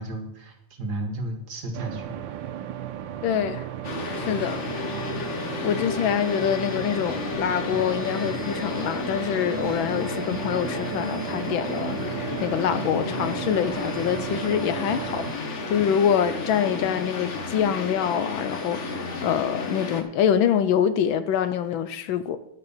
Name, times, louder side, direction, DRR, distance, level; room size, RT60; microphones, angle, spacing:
voice 1, 0.0-2.1, right 1 dB, 50° right, 1.9 m, -33 dB
sound 1, 1.7-15.3, right 11 dB, 70° right, 1.3 m, -35 dB
voice 2, 3.2-3.7 4.1-4.9 5.6-15.3 15.7-22.4, left 9 dB, 75° left, 1.3 m, -25 dB
sound 2, 3.8-20.0, left 3 dB, 40° left, 1.2 m, -32 dB
11.0 x 5.7 x 7.0 m
omnidirectional pair, 2.3 m